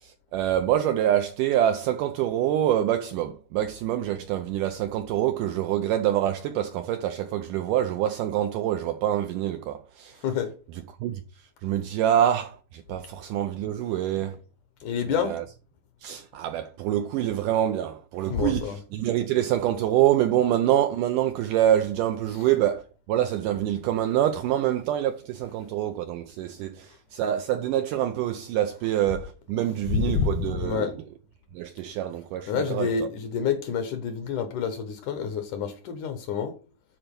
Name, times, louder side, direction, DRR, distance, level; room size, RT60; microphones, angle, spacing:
voice 1, 0.0-10.2 10.7-11.2 11.6-14.4 15.1-15.5 16.0-30.9 31.5-33.1, right 11 dB, 90° right, 1.9 m, -26 dB
voice 2, 14.8-15.3 18.3-18.8 29.9-30.3 30.6-30.9 32.5-36.5, left 7 dB, 70° left, 2.0 m, -28 dB
10.0 x 4.4 x 5.2 m
omnidirectional pair, 4.3 m